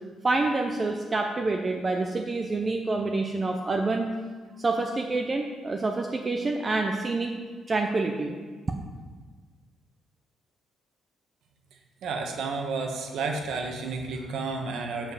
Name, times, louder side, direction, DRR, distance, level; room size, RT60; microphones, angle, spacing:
voice 1, 0.2-4.1 4.6-7.3 7.7-8.4, right 3 dB, 20° right, 3 dB, 0.5 m, -27 dB
voice 2, 11.7-15.1, right 4 dB, 60° right, 3 dB, 1.1 m, -32 dB
7.3 x 5.2 x 6.7 m, 1.5 s
cardioid pair, 180°, 0 cm